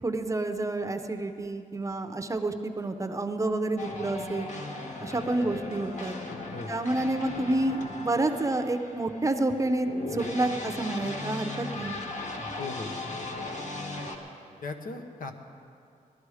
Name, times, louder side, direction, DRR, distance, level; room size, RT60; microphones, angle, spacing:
voice 1, 0.0-4.5 5.0-6.1 6.7-11.9, right 2 dB, 20° right, 7 dB, 0.7 m, -29 dB
sound 1, 3.8-14.1, left 2 dB, 55° left, 1.5 m, -37 dB
voice 2, 12.6-12.9 14.6-15.3, left 3 dB, 75° left, 5 dB, 1.1 m, -37 dB
18.5 x 12.0 x 4.9 m, 2.5 s
wide cardioid pair, 140°, 14 cm